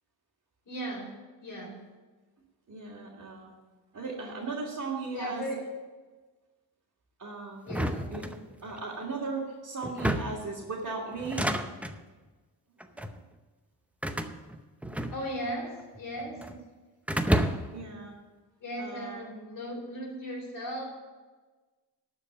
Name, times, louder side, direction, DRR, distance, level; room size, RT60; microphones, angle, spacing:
voice 1, 0.7-1.9 5.1-5.6 7.6-8.2 15.1-16.4 18.6-20.8, equal, 45° left, -2 dB, 4.3 m, -37 dB
voice 2, 2.7-3.5 3.9-5.4 7.2-7.6 8.1-8.2 8.6-11.4 13.0-13.2 16.3-16.6 17.7-18.1 18.8-19.3, right 4 dB, 40° right, -6 dB, 2.8 m, -37 dB
sound 1, 7.7-8.8 9.8-10.5 11.2-12.0 12.8-13.2 14.0-15.5 15.8-16.6 17.1-17.8, equal, 5° right, 0.7 m, -30 dB
12.5 x 5.1 x 8.3 m, 1.3 s
cardioid pair, 90°, 43 cm